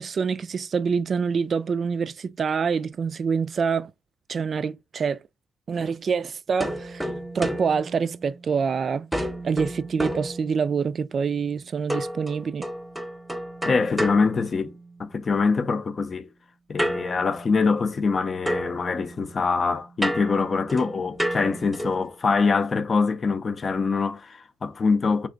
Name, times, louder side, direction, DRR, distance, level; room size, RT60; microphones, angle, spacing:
voice 1, 0.0-3.9 4.3-5.2 5.7-7.1 7.3-9.1 9.4-12.7, right 6 dB, 45° right, 0.3 m, -26 dB
sound 1, 6.6-8.7 9.1-11.0 11.9-15.1 16.8-18.2 18.5-22.1, equal, 5° right, 0.9 m, -32 dB
voice 2, 13.6-14.7 15.0-16.3 16.7-25.3, left 4 dB, 40° left, 0.5 m, -24 dB
3.5 x 3.2 x 3.8 m
cardioid pair, 90°, 0 cm